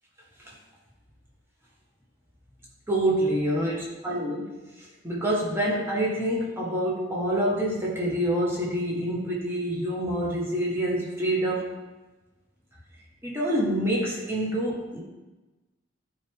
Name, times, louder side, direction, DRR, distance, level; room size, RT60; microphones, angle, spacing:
voice 1, 2.9-4.5 4.8-11.7 13.2-15.0, right 1 dB, 10° right, -5 dB, 1.6 m, -27 dB
11.5 x 4.8 x 3.7 m, 1.1 s
head